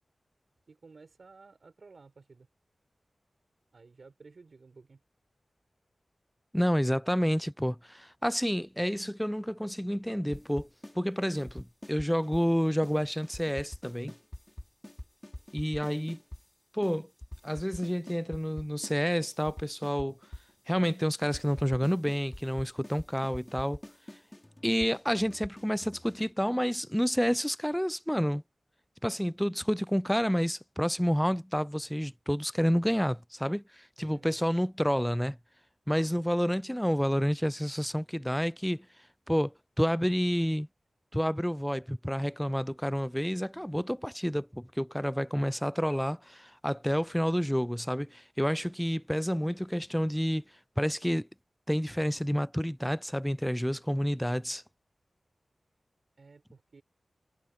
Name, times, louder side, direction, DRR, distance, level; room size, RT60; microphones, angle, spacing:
voice 1, 0.7-2.5 3.7-5.0 34.0-34.4 56.2-56.8, right 4 dB, 70° right, 5.1 m, -54 dB
voice 2, 6.5-10.7 11.0-14.1 15.5-16.2 16.7-17.1 17.4-20.1 20.7-23.8 24.6-28.4 29.0-35.4 35.9-38.9 39.3-40.7 41.1-50.4 50.8-51.3 51.7-54.6, equal, 5° left, 0.4 m, -29 dB
sound 1, 10.3-11.0 11.2-12.5 12.8-13.0 13.2-16.4 16.8-16.9 17.2-19.0 19.2-20.5 20.8-21.0 21.2-26.3, left 1 dB, 20° left, 3.5 m, -45 dB
wide cardioid pair, 55°, 0 cm